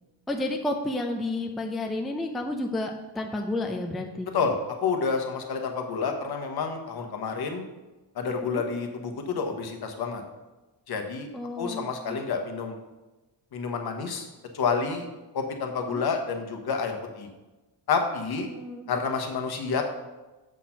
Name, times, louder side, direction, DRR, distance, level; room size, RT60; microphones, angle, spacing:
voice 1, 0.3-4.3 8.5-8.6 11.3-12.2 15.9-16.0 18.4-18.9, left 2 dB, ahead, 2 dB, 0.4 m, -31 dB
voice 2, 4.3-7.6 8.1-10.2 10.9-11.3 11.6-12.8 13.5-14.3 14.5-15.1 15.3-17.3 17.9-18.5 18.9-19.8, left 5 dB, 55° left, 4 dB, 1.1 m, -29 dB
7.3 x 4.3 x 5.8 m, 1.1 s
cardioid pair, 140°, 45 cm